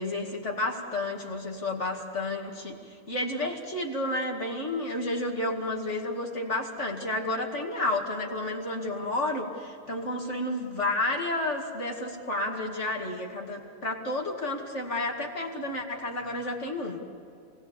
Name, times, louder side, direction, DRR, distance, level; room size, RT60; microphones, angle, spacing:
voice 1, 0.0-17.0, left 2 dB, 55° left, 0 dB, 2.5 m, -31 dB
28.5 x 19.5 x 6.9 m, 2.5 s
omnidirectional pair, 1.5 m